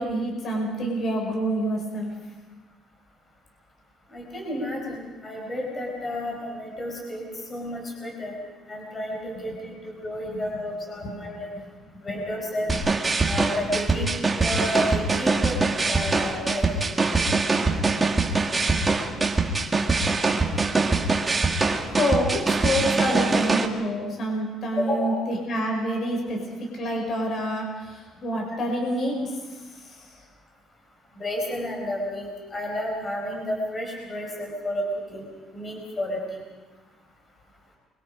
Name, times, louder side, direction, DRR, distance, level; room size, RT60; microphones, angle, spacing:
voice 1, 0.0-2.1 11.0-11.1 21.9-26.4 26.7-29.2 29.8-30.1, equal, 45° left, 1 dB, 5.4 m, -27 dB
voice 2, 4.1-8.4 8.7-11.5 12.0-12.7 13.2-14.1 14.4-15.6 15.9-16.8 24.8-25.2 31.1-34.8 35.1-35.3 35.5-36.4, left 1 dB, 25° left, 0 dB, 4.9 m, -31 dB
sound 1, 12.7-23.7, right 3 dB, 15° right, 1.8 m, -23 dB
29.5 x 23.5 x 5.1 m, 1.2 s
cardioid pair, 160°, 0 cm